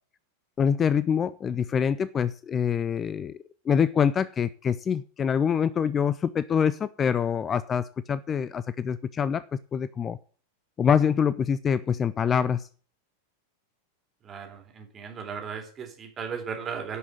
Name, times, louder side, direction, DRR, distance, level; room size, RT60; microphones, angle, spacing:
voice 1, 0.6-3.4 3.7-9.4 9.7-10.2 10.8-12.7, left 7 dB, 25° left, 17 dB, 0.5 m, -25 dB
voice 2, 14.2-17.0, right 6 dB, 25° right, 3 dB, 3.6 m, -36 dB
11.0 x 6.1 x 8.3 m, 0.42 s
figure-of-eight pair, 90°, 0 cm